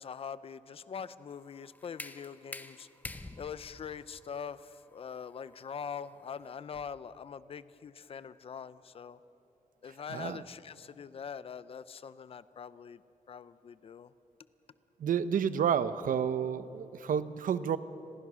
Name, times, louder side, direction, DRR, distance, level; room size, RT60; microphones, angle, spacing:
voice 1, 0.0-2.9 3.4-9.2 9.8-13.0 13.3-14.1, left 7 dB, 45° left, 15 dB, 0.6 m, -43 dB
sound 1, 1.3-7.1, left 2 dB, 10° left, 0.8 m, -48 dB
voice 2, 10.1-10.4 15.0-17.8, right 8 dB, 90° right, 12 dB, 0.9 m, -30 dB
29.5 x 22.0 x 6.3 m, 2.9 s
wide cardioid pair, 180°, 14 cm